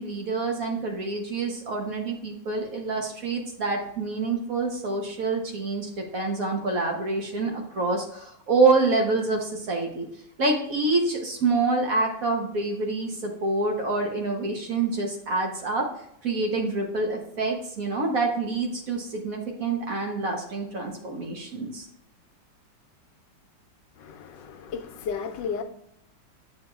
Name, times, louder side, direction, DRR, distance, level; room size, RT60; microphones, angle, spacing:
voice 1, 0.0-10.1 10.4-15.9 16.2-21.9, right 3 dB, 55° right, 1.2 m, -27 dB
voice 2, 24.0-25.6, left 6 dB, 75° left, 1.2 m, -33 dB
7.9 x 5.5 x 2.3 m
omnidirectional pair, 2.0 m